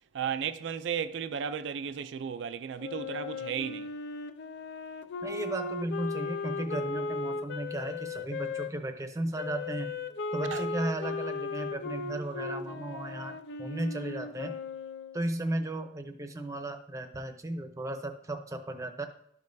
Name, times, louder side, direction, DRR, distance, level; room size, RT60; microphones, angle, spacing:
voice 1, 0.1-3.9 10.5-10.6, right 7 dB, 75° right, 0.4 m, -34 dB
Wind instrument woodwind instrument, 2.8-8.7 9.3-15.2, left 3 dB, 65° left, 0.5 m, -37 dB
voice 2, 5.2-10.0 10.3-14.6 15.1-19.0, right 1 dB, 15° right, 0.6 m, -35 dB
12.5 x 5.3 x 2.6 m
head